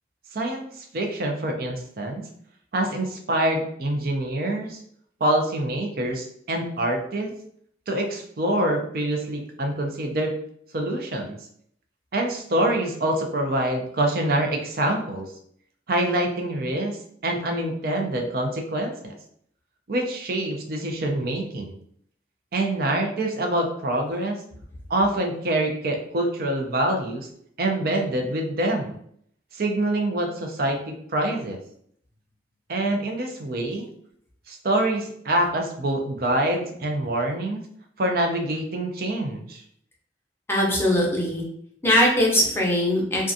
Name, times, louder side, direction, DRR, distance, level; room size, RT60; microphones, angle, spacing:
voice 1, 0.3-2.2 2.7-4.8 5.2-7.3 7.9-10.3 10.7-11.4 12.1-15.3 15.9-17.0 17.2-19.1 19.9-21.7 22.5-24.4 24.9-27.3 27.6-29.0 29.5-31.6 32.7-33.9 34.5-37.6 38.0-39.6, right 1 dB, 55° right, 3 dB, 0.5 m, -25 dB
voice 2, 40.5-41.4 41.8-43.3, left 1 dB, 15° left, -2 dB, 0.6 m, -21 dB
2.4 x 2.3 x 2.6 m, 0.65 s
head